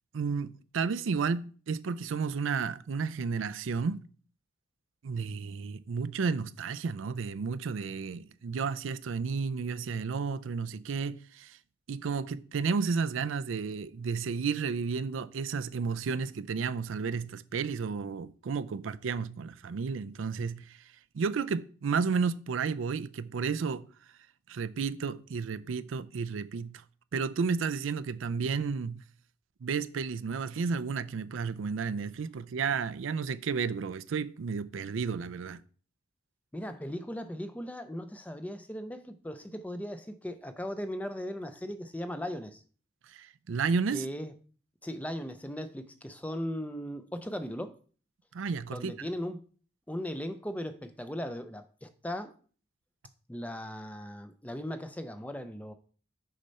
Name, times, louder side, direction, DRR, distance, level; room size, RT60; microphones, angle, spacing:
voice 1, 0.1-4.1 5.0-11.6 11.9-20.8 21.1-23.8 24.5-26.8 27.1-29.0 29.6-35.6 43.1-44.1 48.3-48.9, right 5 dB, 85° right, 0.4 m, -32 dB
voice 2, 36.5-42.6 43.9-44.3 44.8-47.7 48.7-49.4 49.9-52.3 53.3-55.7, equal, 10° left, 0.5 m, -38 dB
6.5 x 4.3 x 5.4 m
head